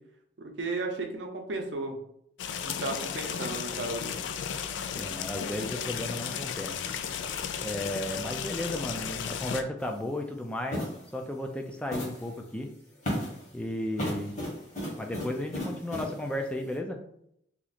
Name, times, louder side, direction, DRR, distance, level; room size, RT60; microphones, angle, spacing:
voice 1, 0.4-1.9 2.6-4.1, right 3 dB, 85° right, 2 dB, 0.7 m, -34 dB
sound 1, 2.4-9.6, left 7 dB, 90° left, 0.3 m, -34 dB
voice 2, 4.9-6.8 7.6-10.8 11.1-12.7 13.5-14.4 15.0-17.0, left 1 dB, 5° left, 2 dB, 0.3 m, -34 dB
sound 2, 9.8-10.0 10.7-11.0 11.9-12.3 13.0-13.5 14.0-16.2, equal, 40° left, 1.3 m, -34 dB
2.9 x 2.4 x 4.1 m, 0.73 s
head